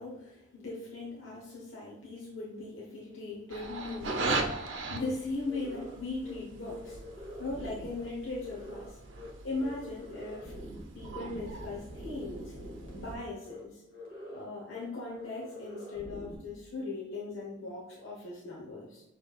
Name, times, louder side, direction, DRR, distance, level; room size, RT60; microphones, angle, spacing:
voice 1, 0.0-7.0 7.4-9.0 9.4-10.5 10.9-12.5 12.9-13.8 14.3-19.0, left 3 dB, 80° left, -5 dB, 1.1 m, -39 dB
sound 1, 3.5-13.1, right 3 dB, 75° right, 0.7 m, -39 dB
sound 2, 5.0-5.1 5.4-5.9 6.2-6.4 6.6-8.1 8.4-8.9 9.1-9.3 9.6-13.2 13.4-13.6 13.9-14.4 14.7-14.8 15.1-16.4, equal, 60° left, 1.7 m, -45 dB
6.5 x 3.4 x 2.4 m, 0.97 s
head